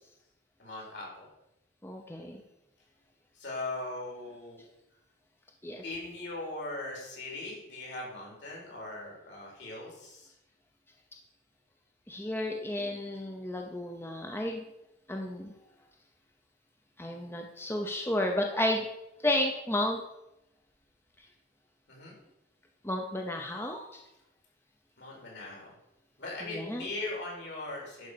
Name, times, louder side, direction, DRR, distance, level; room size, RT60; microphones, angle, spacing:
voice 1, 0.6-1.3 3.3-4.6 5.8-10.3 21.9-22.1 25.0-25.7 26.2-28.1, left 2 dB, 70° left, -2 dB, 4.0 m, -39 dB
voice 2, 1.8-2.4 5.6-5.8 12.1-14.6 15.1-15.5 17.0-18.8 19.2-20.0 22.8-24.0 26.4-26.9, left 1 dB, 10° left, 2 dB, 0.8 m, -32 dB
10.5 x 4.9 x 6.8 m, 0.88 s
head